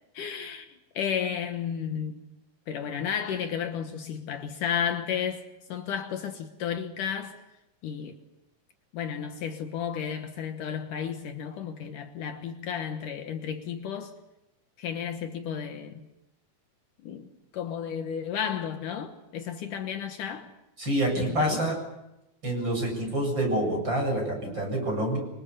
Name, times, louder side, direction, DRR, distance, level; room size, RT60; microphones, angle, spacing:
voice 1, 0.1-0.7 0.9-2.2 2.7-5.4 5.7-7.4 7.8-8.2 8.9-14.1 14.8-16.0 17.0-17.3 17.5-20.5 21.2-21.7, left 8 dB, 70° left, 2.8 m, -33 dB
voice 2, 20.8-21.8 22.4-25.2, right 1 dB, 30° right, 8.7 m, -27 dB
26.5 x 25.0 x 7.0 m
omnidirectional pair, 4.0 m